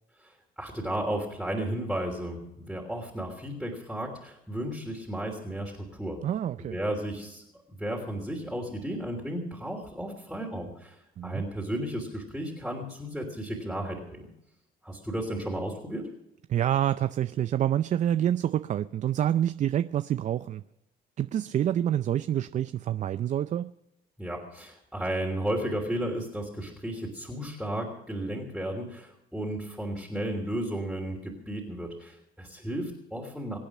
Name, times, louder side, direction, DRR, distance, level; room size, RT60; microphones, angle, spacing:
voice 1, 0.2-6.2 6.6-14.3 14.8-16.1 24.2-33.6, right 1 dB, ahead, 3.2 m, -34 dB
voice 2, 6.2-6.8 11.2-11.4 16.5-20.6 21.2-23.7, right 11 dB, 45° right, 0.5 m, -27 dB
24.5 x 8.7 x 6.1 m
cardioid pair, 110°, 17 cm